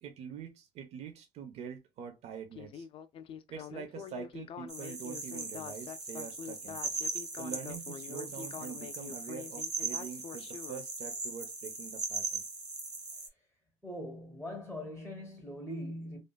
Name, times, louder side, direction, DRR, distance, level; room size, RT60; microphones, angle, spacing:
voice 1, 0.0-2.9 3.5-6.8 7.4-12.4, right 7 dB, 60° right, 0.6 m, -45 dB
Speech synthesizer, 2.5-10.8, left 8 dB, 45° left, 0.4 m, -45 dB
sound 1, 4.7-13.3, right 3 dB, 30° right, 1.1 m, -39 dB
voice 2, 13.8-16.2, equal, ahead, 0.8 m, -41 dB
3.3 x 2.5 x 2.2 m
cardioid pair, 130°, 13 cm